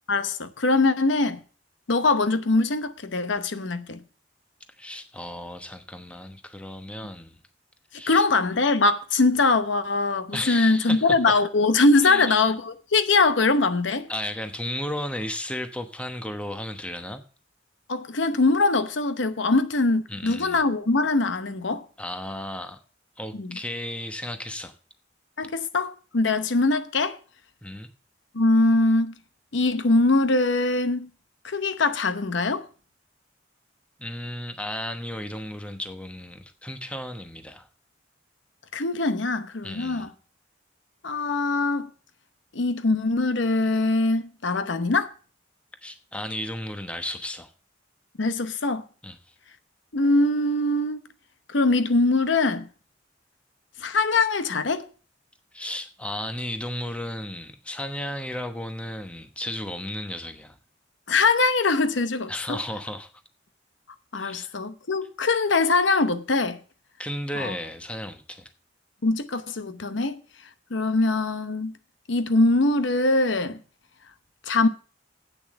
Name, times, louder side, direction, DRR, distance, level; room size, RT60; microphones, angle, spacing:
voice 1, 0.1-1.4 1.9-4.0 8.1-14.1 17.9-21.8 23.4-23.6 25.4-27.2 28.3-29.1 29.5-31.1 31.4-32.7 38.7-40.1 41.0-41.9 42.5-45.1 48.2-48.8 49.9-51.0 51.5-52.7 53.8-54.9 61.1-62.6 64.1-66.6 67.4-67.5 69.0-70.2 70.7-71.7 72.1-73.6 74.5-74.7, left 3 dB, 80° left, 0.9 m, -22 dB
voice 2, 4.8-7.4 7.9-8.2 10.3-11.2 12.0-12.4 14.1-17.2 20.1-20.6 22.0-22.8 23.2-24.7 27.6-27.9 34.0-37.7 39.6-40.1 45.8-47.5 49.0-49.2 55.5-60.6 62.3-63.1 64.2-64.5 67.0-68.5, left 1 dB, 5° left, 1.0 m, -34 dB
8.5 x 6.9 x 7.7 m
head